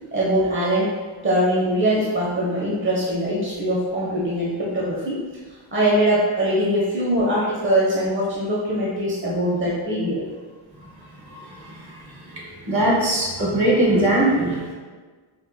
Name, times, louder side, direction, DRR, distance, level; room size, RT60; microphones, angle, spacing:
voice 1, 0.1-0.9 1.2-5.2 5.7-10.2, equal, 25° right, -6 dB, 0.8 m, -22 dB
voice 2, 11.2-11.9 12.2-14.7, right 1 dB, 50° right, -5 dB, 1.5 m, -21 dB
5.3 x 2.5 x 2.2 m, 1.4 s
cardioid pair, 50°, 49 cm